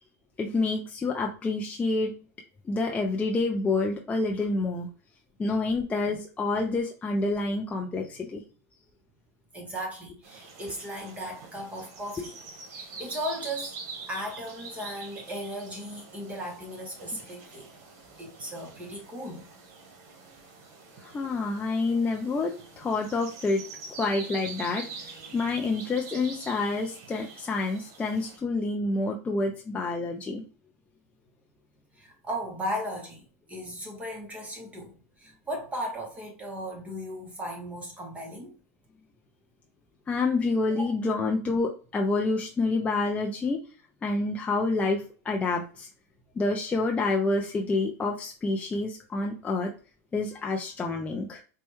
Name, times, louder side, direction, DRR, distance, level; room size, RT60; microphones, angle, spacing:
voice 1, 0.4-2.1 2.7-4.9 5.4-8.4 21.0-22.5 22.8-23.6 24.0-24.8 25.3-30.4 40.1-43.6 44.0-45.9 46.4-49.7 50.1-51.4, left 3 dB, 15° left, 0.4 m, -28 dB
voice 2, 9.5-12.4 12.7-13.7 14.1-17.7 18.2-19.5 31.9-38.6 40.7-40.9, equal, 15° right, 1.0 m, -36 dB
sound 1, 10.2-28.4, right 4 dB, 50° right, 1.2 m, -45 dB
4.2 x 2.2 x 3.0 m
hypercardioid pair, 115°, 8 cm